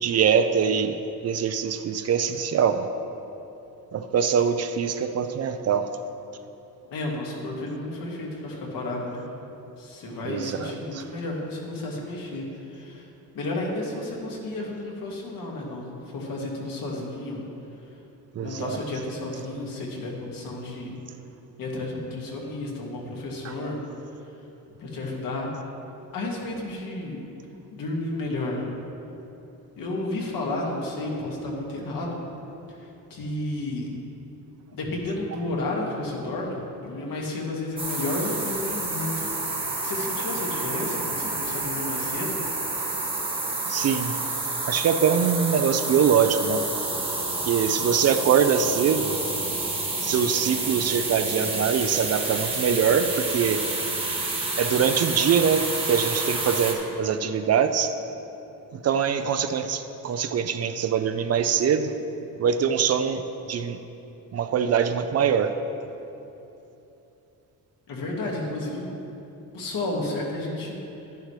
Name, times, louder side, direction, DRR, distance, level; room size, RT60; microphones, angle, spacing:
voice 1, 0.0-2.9 3.9-5.9 10.2-11.1 18.3-18.8 23.4-23.7 43.7-44.2 44.6-46.7 47.4-49.2 50.0-53.6 54.6-57.9 58.7-61.9 62.4-63.2 63.5-63.8 64.3-65.5, right 7 dB, 45° right, 9 dB, 0.4 m, -23 dB
voice 2, 6.9-9.3 9.8-12.4 12.7-13.1 13.3-17.4 18.4-21.0 21.6-23.8 24.8-25.5 26.1-27.2 27.7-28.6 29.8-32.1 33.1-34.0 34.7-39.3 39.8-42.4 67.9-68.9 69.5-70.8, left 2 dB, 70° left, -2 dB, 1.9 m, -32 dB
sound 1, 37.8-56.7, right 2 dB, 15° right, 1.2 m, -29 dB
sound 2, 45.7-57.1, left 1 dB, 85° left, 1.7 m, -42 dB
11.5 x 10.5 x 3.2 m, 2.9 s
cardioid pair, 165°, 36 cm